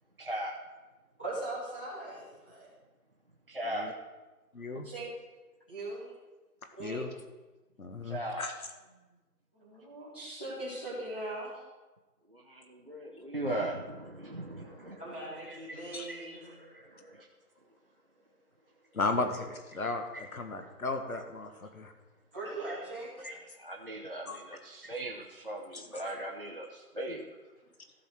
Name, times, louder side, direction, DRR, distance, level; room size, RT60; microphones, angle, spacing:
voice 1, 0.2-0.5 3.5-3.9 4.7-4.8 8.0-8.5 12.3-17.3 20.1-20.3 22.6-22.9 23.2-27.4, right 1 dB, 35° right, -2 dB, 0.7 m, -39 dB
voice 2, 1.2-2.7 4.8-5.1 5.7-6.1 6.8-7.1 9.6-11.6 15.0-16.5 22.3-23.1, right 2 dB, 10° right, -13 dB, 1.5 m, -40 dB
voice 3, 4.5-4.9 6.8-7.1 7.8-8.5 15.9-16.1 18.9-21.9 24.3-24.4 25.7-25.9, left 3 dB, 65° left, 6 dB, 1.7 m, -35 dB
15.0 x 5.8 x 4.6 m, 1.2 s
figure-of-eight pair, 175°, 46 cm